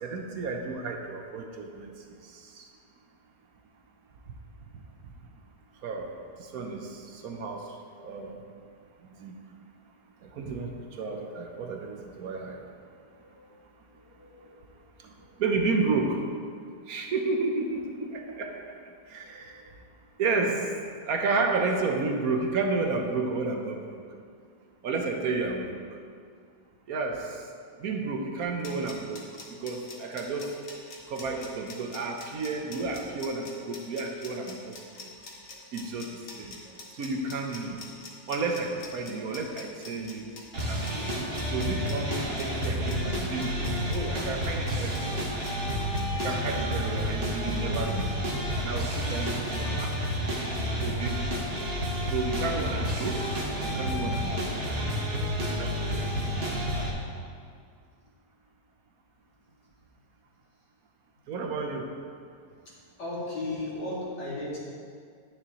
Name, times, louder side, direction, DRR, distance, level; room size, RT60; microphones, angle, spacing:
voice 1, 0.0-1.9 5.8-6.1 6.5-7.6 8.0-8.3 9.2-9.3 10.4-10.7 11.0-12.6 15.4-16.2 16.9-18.6 19.1-19.5 20.2-20.6 21.1-24.0 24.8-25.8 26.9-27.2 27.8-29.3 29.6-30.5 31.1-35.1 35.7-36.1 36.4-36.5 37.0-37.8 38.3-40.3 40.7-41.1 41.5-45.2 46.2-48.1 48.6-49.9 50.8-51.4 52.1-53.3 53.6-54.7 55.6-55.7 61.3-61.8, right 3 dB, 65° right, 3 dB, 1.2 m, -31 dB
voice 2, 13.2-13.6 14.1-14.5 15.2-15.3 19.2-19.7 35.5-35.8 36.6-36.8 40.8-41.0 63.0-64.6, left 2 dB, 75° left, -7 dB, 3.0 m, -37 dB
sound 1, 28.4-46.3, left 3 dB, 50° left, 1.5 m, -45 dB
sound 2, 40.5-56.9, equal, 35° right, 1.4 m, -30 dB
9.8 x 9.4 x 3.0 m, 2.2 s
omnidirectional pair, 1.9 m